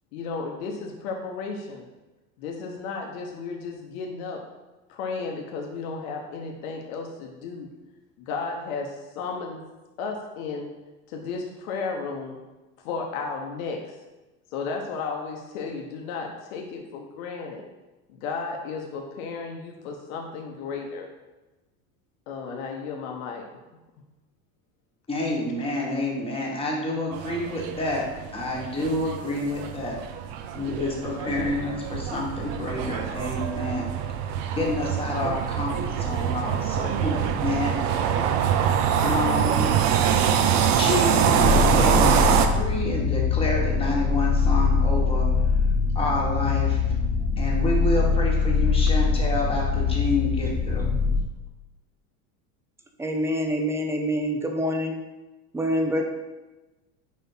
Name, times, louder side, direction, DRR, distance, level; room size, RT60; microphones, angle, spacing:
voice 1, 0.1-1.9 2.4-4.4 4.9-7.7 8.2-9.6 10.0-10.7 11.1-12.4 12.8-14.0 14.5-17.6 18.1-21.1 22.3-23.5, left 4 dB, 80° left, 1 dB, 1.1 m, -34 dB
voice 2, 25.1-28.0 28.3-30.0 30.5-33.9 34.5-37.7 39.0-39.7 40.8-45.3 45.9-46.8 47.4-50.9, left 1 dB, 15° left, -2 dB, 1.4 m, -28 dB
sound 1, 27.1-42.5, right 8 dB, 65° right, 0.7 m, -24 dB
sound 2, 41.4-51.2, left 5 dB, 45° left, 1.1 m, -23 dB
voice 3, 53.0-55.0 55.5-56.0, equal, 5° right, 3 dB, 0.5 m, -26 dB
5.3 x 4.3 x 5.5 m, 1.1 s
supercardioid pair, 145°, 41 cm